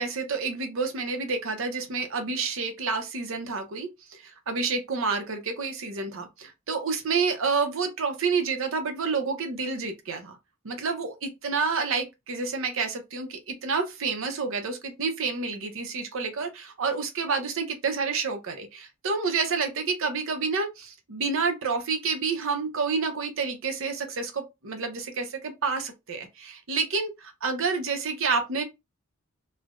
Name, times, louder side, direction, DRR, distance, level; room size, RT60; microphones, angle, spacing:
voice 1, 0.0-10.4 10.6-28.6, right 4 dB, 65° right, 0.7 m, -29 dB
3.2 x 2.0 x 2.4 m
head